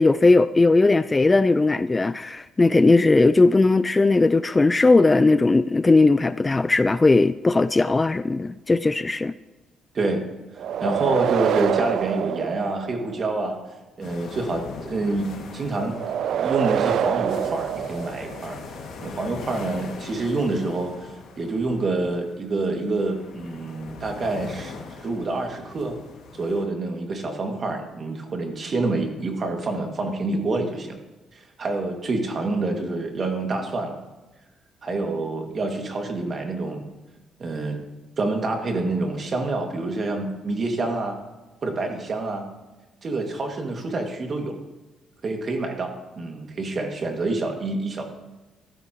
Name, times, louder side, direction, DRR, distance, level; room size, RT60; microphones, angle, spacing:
voice 1, 0.0-9.3, left 3 dB, 20° left, 0.3 m, -18 dB
voice 2, 10.5-13.6 14.0-16.0 16.3-18.6 19.0-24.7 25.0-25.9 26.3-31.0 31.3-34.0 34.8-36.9 37.4-37.8 38.2-41.2 41.6-42.5 43.0-44.6 45.2-48.0, right 2 dB, 45° right, 2.2 m, -27 dB
sound 1, 10.6-13.3 15.9-18.6, right 9 dB, 70° right, 0.3 m, -26 dB
sound 2, 14.0-26.6, left 4 dB, 80° left, 2.2 m, -41 dB
15.0 x 13.0 x 3.1 m
cardioid pair, 90°, 0 cm